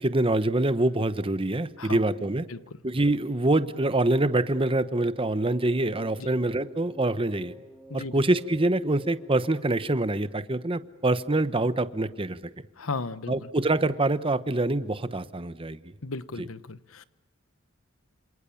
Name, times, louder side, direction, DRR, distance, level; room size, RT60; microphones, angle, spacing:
voice 1, 0.0-2.5 2.8-7.5 7.9-12.5 13.3-15.8 16.4-16.5, right 2 dB, 25° right, 1.0 m, -25 dB
sound 1, 3.6-10.8, equal, ahead, 4.1 m, -50 dB
voice 2, 7.9-8.2 12.8-13.3 16.0-17.0, left 3 dB, 85° left, 1.1 m, -35 dB
27.5 x 27.5 x 7.1 m
head